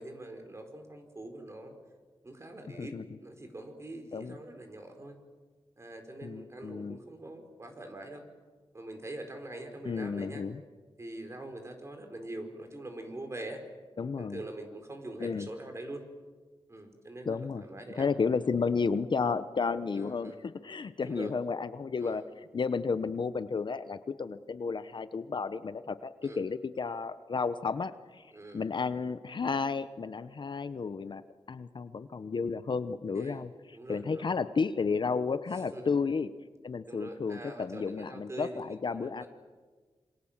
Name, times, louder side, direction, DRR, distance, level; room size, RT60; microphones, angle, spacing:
voice 1, 0.0-1.7 2.2-5.1 5.8-8.2 8.7-10.4 11.0-13.6 14.2-16.0 16.7-18.1 19.9-20.4 21.0-21.3 22.0-22.2 26.2-26.4 28.3-28.7 33.1-33.5 33.7-34.3 35.5-35.9 36.8-39.3, right 1 dB, 30° right, 5 dB, 4.5 m, -44 dB
voice 2, 6.2-7.0 9.8-10.6 14.0-14.4 15.2-15.5 17.3-17.6 18.0-22.2 22.5-31.2 31.5-33.5 33.9-36.3 36.6-39.2, left 5 dB, 50° left, 12 dB, 0.9 m, -32 dB
27.0 x 25.5 x 7.4 m, 1.4 s
wide cardioid pair, 105°, 10 cm